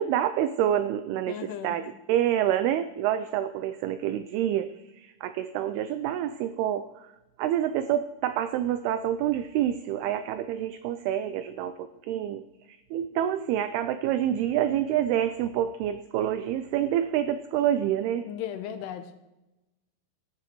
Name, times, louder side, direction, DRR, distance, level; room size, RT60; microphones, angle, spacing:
voice 1, 0.0-7.1 7.4-18.3, right 11 dB, 90° right, 11 dB, 2.2 m, -27 dB
voice 2, 1.3-1.8 18.2-19.1, left 10 dB, 85° left, 9 dB, 2.6 m, -36 dB
19.0 x 12.0 x 3.1 m, 1.0 s
omnidirectional pair, 5.1 m